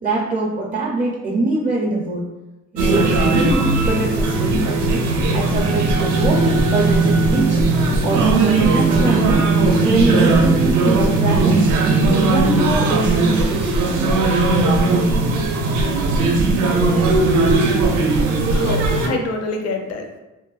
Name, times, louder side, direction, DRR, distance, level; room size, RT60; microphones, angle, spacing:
voice 1, 0.0-2.2 2.7-7.6 8.0-9.5 9.8-11.6 12.0-14.2 19.1-19.2, right 2 dB, 25° right, -2 dB, 0.5 m, -23 dB
sound 1, 2.8-19.1, right 3 dB, 75° right, 0.5 m, -17 dB
voice 2, 18.5-20.2, left 3 dB, 55° left, 4 dB, 0.5 m, -26 dB
3.1 x 2.1 x 2.3 m, 1.0 s
cardioid pair, 90°, 30 cm